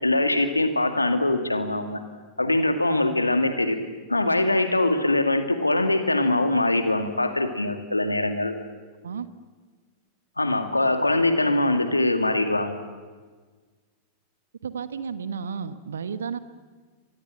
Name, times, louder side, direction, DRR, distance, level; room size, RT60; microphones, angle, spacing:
voice 1, 0.0-2.0 2.4-3.8 4.1-8.5 10.4-12.8, left 2 dB, 85° left, 7 dB, 2.2 m, -23 dB
voice 2, 14.6-16.4, right 6 dB, 70° right, 13 dB, 1.2 m, -32 dB
29.0 x 24.5 x 7.6 m, 1.4 s
figure-of-eight pair, 90°, 0 cm